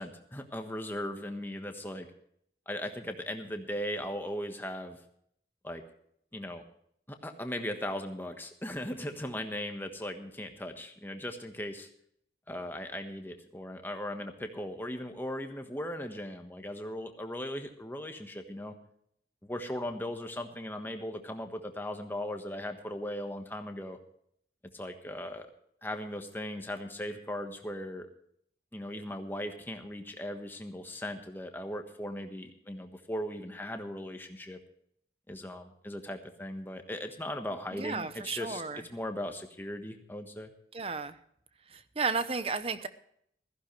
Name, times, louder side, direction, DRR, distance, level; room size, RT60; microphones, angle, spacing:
voice 1, 0.0-2.1 2.7-5.0 5.6-5.8 6.3-6.6 7.1-11.9 12.5-18.8 19.4-24.0 24.7-25.5 25.8-28.1 28.7-34.6 35.3-38.6 38.9-40.5, left 1 dB, 10° left, 5 dB, 1.3 m, -38 dB
voice 2, 37.7-38.8 40.7-41.2 41.7-42.9, right 4 dB, 30° right, 12 dB, 0.8 m, -33 dB
16.0 x 14.5 x 3.3 m, 0.68 s
head